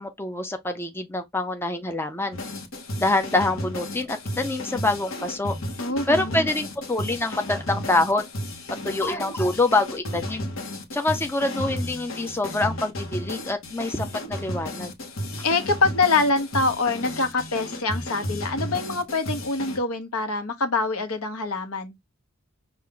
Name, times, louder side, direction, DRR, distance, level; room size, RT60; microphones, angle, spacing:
voice 1, 0.0-2.4 3.0-5.5 6.1-8.2 8.8-10.5 10.9-14.9, left 2 dB, 10° left, 0.4 m, -25 dB
sound 1, 2.3-19.8, left 1 dB, 70° left, 1.1 m, -33 dB
voice 2, 5.8-6.5 15.4-22.0, left 3 dB, 90° left, 1.0 m, -25 dB
5.7 x 2.5 x 3.7 m
head